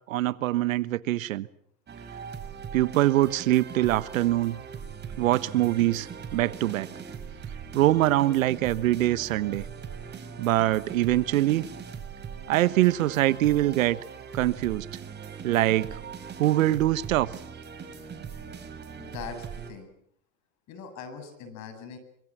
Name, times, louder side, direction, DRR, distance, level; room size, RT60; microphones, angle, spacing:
voice 1, 0.1-1.5 2.7-4.6 5.2-6.9 7.7-9.6 10.4-11.6 12.5-14.0 14.3-14.9 15.4-15.9 16.4-17.3, right 15 dB, 75° right, 17 dB, 1.3 m, -23 dB
sound 1, 1.9-19.7, right 6 dB, 25° right, 4.6 m, -40 dB
voice 2, 19.0-19.9 20.7-22.0, left 6 dB, 45° left, 9 dB, 8.0 m, -41 dB
26.0 x 25.0 x 7.4 m, 0.68 s
hypercardioid pair, 110°, 40 cm